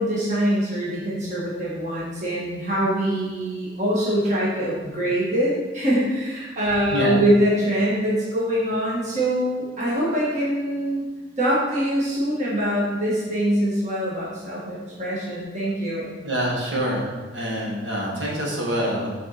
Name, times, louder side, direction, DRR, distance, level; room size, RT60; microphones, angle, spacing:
voice 1, 0.0-11.0 11.4-16.1, equal, 40° right, -7 dB, 1.8 m, -23 dB
voice 2, 16.2-17.1 17.3-19.3, equal, 85° right, -3 dB, 1.9 m, -26 dB
7.7 x 4.6 x 4.3 m, 1.3 s
head